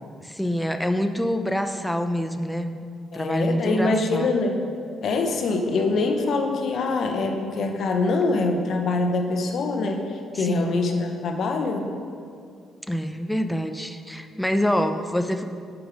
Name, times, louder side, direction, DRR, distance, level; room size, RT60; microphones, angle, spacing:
voice 1, 0.2-2.8 3.1-4.3 10.3-10.8 12.9-15.4, equal, 5° left, 8 dB, 0.5 m, -26 dB
voice 2, 3.1-4.6 5.0-11.9, left 3 dB, 65° left, 4 dB, 1.0 m, -24 dB
8.5 x 6.1 x 5.0 m, 2.3 s
cardioid pair, 90°, 0 cm